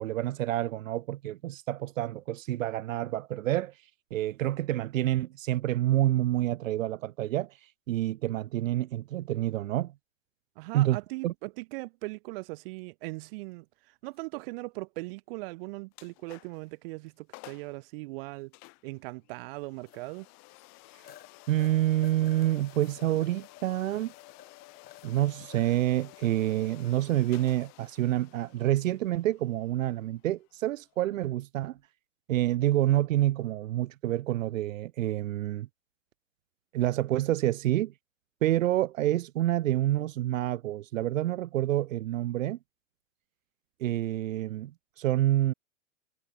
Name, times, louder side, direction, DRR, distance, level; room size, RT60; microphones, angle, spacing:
voice 1, 0.0-3.7 4.1-7.6 7.9-9.9 10.7-11.0 11.2-11.3 21.5-24.1 25.0-31.8 32.3-35.7 36.7-37.9 38.4-42.6 43.8-45.5, right 14 dB, 85° right, 0.5 m, -28 dB
voice 2, 10.6-13.6 14.0-18.5 18.8-20.3, right 24 dB, 50° right, 0.7 m, -39 dB
sound 1, 14.1-14.3 16.8-16.9 19.9-20.0 20.5-20.6 21.0-21.3 21.6-26.3 26.8-27.0 27.6-28.1 31.6-31.8, left 11 dB, 25° left, 1.8 m, -54 dB
sound 2, 15.9-16.7 17.1-17.2 17.3-17.8 18.5-31.3, left 28 dB, 45° left, 5.7 m, -53 dB
hypercardioid pair, 120°, 38 cm